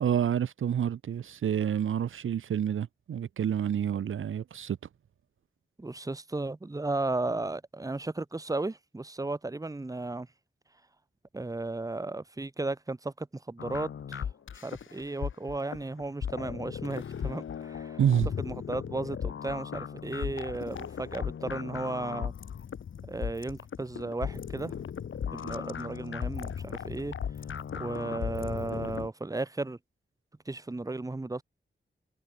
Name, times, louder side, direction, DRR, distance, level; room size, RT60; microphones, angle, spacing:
voice 1, 0.0-4.8 18.0-18.3, right 9 dB, 80° right, 0.6 m, -28 dB
voice 2, 5.8-10.3 11.3-14.3 14.6-18.0 18.4-22.3 23.0-24.7 25.3-27.2 27.7-29.8 30.5-31.4, right 2 dB, 15° right, 1.1 m, -35 dB
sound 1, 13.6-29.1, left 8 dB, 80° left, 0.9 m, -37 dB
wide cardioid pair, 145°, 20 cm